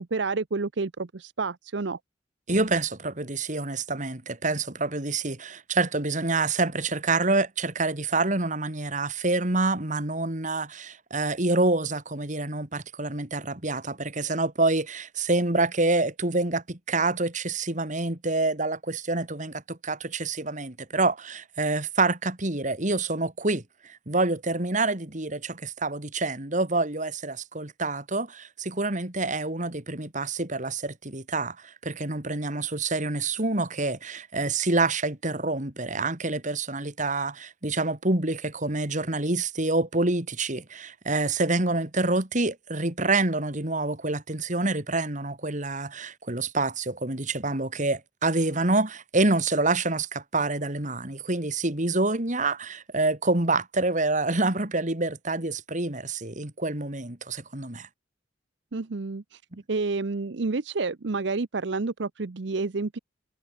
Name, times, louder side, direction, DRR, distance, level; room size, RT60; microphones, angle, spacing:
voice 1, 0.0-2.0 58.7-59.4 59.7-63.0, right 3 dB, 65° right, 0.7 m, -29 dB
voice 2, 2.5-57.9 59.5-59.6, right 2 dB, 40° right, 2.7 m, -27 dB
head